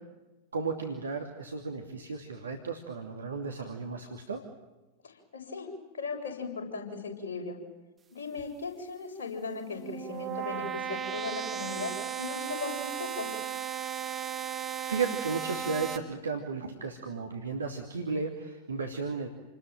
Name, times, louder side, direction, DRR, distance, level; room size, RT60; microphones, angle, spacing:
voice 1, 0.5-4.4 14.8-19.3, right 4 dB, 70° right, 4 dB, 2.7 m, -34 dB
voice 2, 5.0-7.6 8.1-13.4, left 4 dB, 65° left, 2 dB, 7.6 m, -38 dB
sound 1, 9.5-16.0, right 8 dB, 20° right, 3.0 m, -36 dB
29.5 x 20.5 x 9.2 m, 1.1 s
figure-of-eight pair, 90°, 0 cm